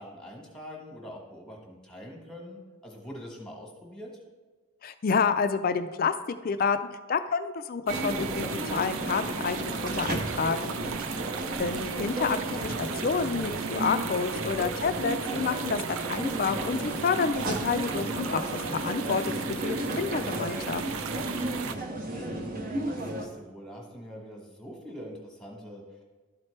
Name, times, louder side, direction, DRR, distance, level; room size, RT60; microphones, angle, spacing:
voice 1, 0.0-4.2 21.7-26.0, equal, 5° left, -1 dB, 1.2 m, -44 dB
voice 2, 4.8-6.1 6.4-6.8 7.1-10.7 11.6-20.8, left 5 dB, 40° left, 10 dB, 0.4 m, -29 dB
sound 1, 7.9-23.3, right 1 dB, 40° right, 0.7 m, -34 dB
sound 2, 7.9-21.8, right 6 dB, 60° right, 0.4 m, -36 dB
12.0 x 4.4 x 3.2 m, 1.3 s
head